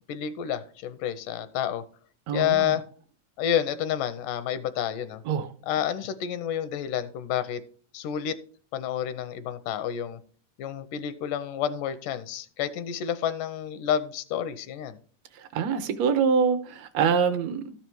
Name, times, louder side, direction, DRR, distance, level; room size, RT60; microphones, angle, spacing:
voice 1, 0.1-1.8 2.3-2.8 3.4-5.2 5.6-7.6 7.9-8.4 8.7-10.2 10.6-15.0, left 10 dB, 85° left, 2.3 m, -29 dB
voice 2, 2.3-2.7 5.3-5.5 15.5-17.7, right 6 dB, 70° right, 1.7 m, -25 dB
13.0 x 5.6 x 4.6 m
omnidirectional pair, 3.6 m